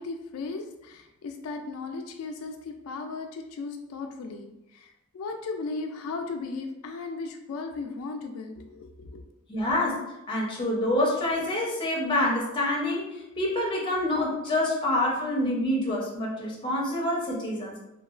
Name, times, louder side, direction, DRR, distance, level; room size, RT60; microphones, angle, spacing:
voice 1, 0.0-9.2, left 3 dB, 90° left, 4 dB, 0.3 m, -36 dB
voice 2, 9.5-17.7, left 1 dB, 25° left, -3 dB, 0.6 m, -27 dB
2.9 x 2.2 x 2.3 m, 0.91 s
head